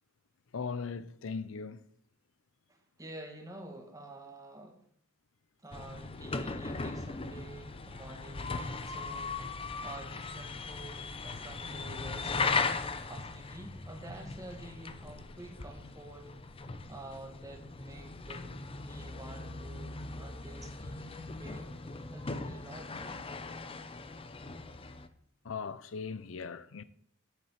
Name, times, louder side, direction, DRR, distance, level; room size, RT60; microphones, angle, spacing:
voice 1, 0.5-1.8 25.4-26.8, left 5 dB, 70° left, 0.5 m, -39 dB
voice 2, 2.7-4.8 5.6-9.3 9.8-12.5 13.1-16.3 16.9-19.9 20.2-21.7 22.1-23.3, right 1 dB, 15° right, 1.9 m, -49 dB
sound 1, 5.7-25.1, left 3 dB, 25° left, 0.6 m, -38 dB
8.2 x 7.4 x 7.3 m
head